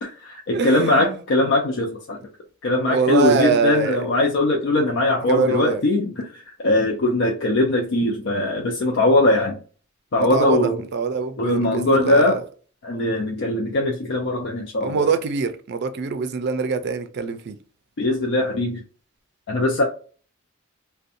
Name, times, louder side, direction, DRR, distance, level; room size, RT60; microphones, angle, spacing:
voice 1, 0.0-2.2 2.6-6.3 6.6-9.6 10.1-10.8 11.4-12.4 12.8-15.0 18.0-18.8 19.5-19.8, left 2 dB, 60° left, 0.5 m, -20 dB
voice 2, 0.5-1.2 2.9-4.1 5.3-5.8 10.2-12.4 14.8-17.6, right 5 dB, 55° right, 0.4 m, -24 dB
2.5 x 2.1 x 2.6 m
head